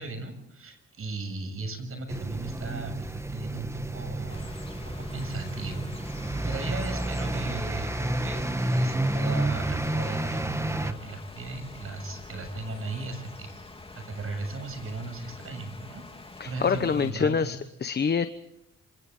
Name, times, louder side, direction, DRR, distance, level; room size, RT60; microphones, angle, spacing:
voice 1, 0.0-4.5 5.0-5.9 6.5-13.5 13.9-16.0 16.4-17.5, right 3 dB, 45° right, 7 dB, 7.3 m, -36 dB
sound 1, 2.1-10.9, right 1 dB, 10° right, 1.3 m, -30 dB
sound 2, 4.3-17.1, left 3 dB, 20° left, 3.0 m, -46 dB
voice 2, 16.4-18.3, left 6 dB, 35° left, 10 dB, 1.1 m, -26 dB
27.5 x 27.0 x 3.9 m, 0.80 s
cardioid pair, 90°, 30 cm